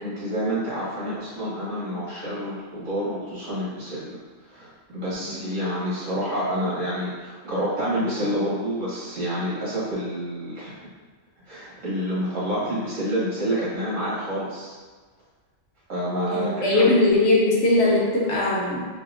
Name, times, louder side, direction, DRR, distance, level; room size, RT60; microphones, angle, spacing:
voice 1, 0.0-4.2 4.4-10.9 11.5-14.8 15.9-16.9, equal, 85° right, -10 dB, 1.9 m, -28 dB
voice 2, 5.1-5.4 16.3-18.9, left 2 dB, 65° left, -4 dB, 1.1 m, -20 dB
4.0 x 2.8 x 2.4 m, 1.4 s
omnidirectional pair, 1.3 m